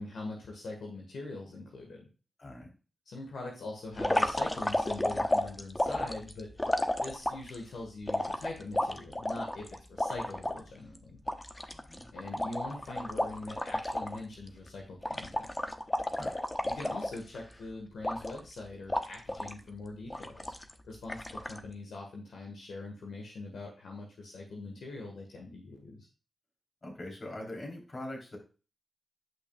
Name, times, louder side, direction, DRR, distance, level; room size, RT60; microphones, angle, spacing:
voice 1, 0.0-2.1 3.0-6.5 7.0-11.2 12.1-15.5 16.6-20.6 20.8-26.1, left 2 dB, 85° left, 1 dB, 1.5 m, -42 dB
voice 2, 2.4-2.7 11.7-12.1 16.2-16.4 26.8-28.4, left 1 dB, 50° left, 1 dB, 3.4 m, -42 dB
sound 1, 4.0-7.6 8.1-10.6 11.0-11.1 11.3-14.2 14.5-14.7 15.0-17.5 18.0-18.5 18.9-19.6 20.1-20.7 21.1-21.6, left 1 dB, 20° left, 0.9 m, -32 dB
9.9 x 5.8 x 2.3 m, 0.34 s
cardioid pair, 45°, 0 cm